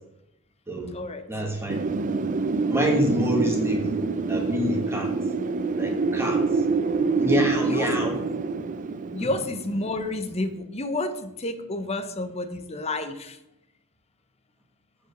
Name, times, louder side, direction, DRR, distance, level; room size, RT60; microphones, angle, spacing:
voice 1, 1.3-2.2 2.7-4.0 4.3-5.1 5.8-6.6 7.2-8.2 9.2-9.3, equal, 10° right, 0 dB, 1.8 m, -27 dB
Wind, 1.7-10.4, right 4 dB, 35° right, 0.4 m, -26 dB
voice 2, 9.1-13.4, left 2 dB, 30° left, 9 dB, 0.7 m, -30 dB
7.5 x 4.9 x 6.8 m, 0.85 s
head